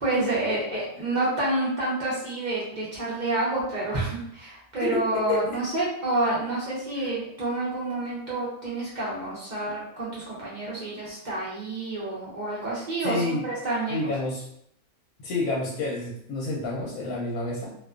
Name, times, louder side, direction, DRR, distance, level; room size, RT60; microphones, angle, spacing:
voice 1, 0.0-14.0, right 2 dB, 50° right, -7 dB, 0.6 m, -28 dB
voice 2, 0.7-1.1 4.7-5.4 6.9-7.1 13.0-13.4 13.9-14.4 15.2-17.7, left 2 dB, 80° left, -4 dB, 1.1 m, -29 dB
2.5 x 2.2 x 2.3 m, 0.70 s
omnidirectional pair, 1.5 m